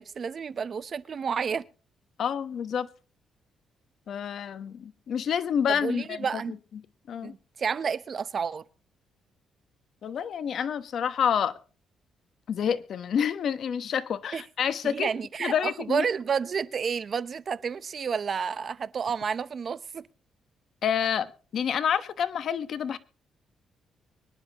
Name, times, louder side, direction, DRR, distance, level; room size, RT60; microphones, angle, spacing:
voice 1, 0.0-1.7 5.7-6.6 7.2-8.6 14.3-14.4 14.8-20.1, right 6 dB, 45° right, 0.8 m, -30 dB
voice 2, 2.2-2.9 4.1-6.2 7.1-7.3 10.0-11.5 12.5-15.1 15.4-16.0 20.8-23.0, left 8 dB, 60° left, 1.1 m, -28 dB
24.5 x 10.5 x 3.0 m
cardioid pair, 90°, 0 cm